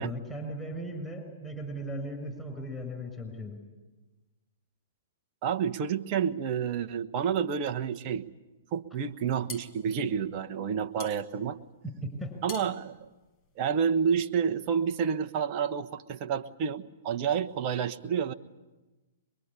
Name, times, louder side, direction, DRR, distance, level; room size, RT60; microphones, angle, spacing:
voice 1, 0.0-3.6 12.0-12.3, equal, 5° left, 1 dB, 6.0 m, -37 dB
voice 2, 5.4-8.3 8.7-11.6 12.4-13.0 13.6-18.3, right 7 dB, 40° right, 6 dB, 1.2 m, -29 dB
sound 1, 9.1-14.1, left 4 dB, 40° left, 4.8 m, -47 dB
23.5 x 23.0 x 9.9 m, 1.1 s
figure-of-eight pair, 115°, 0 cm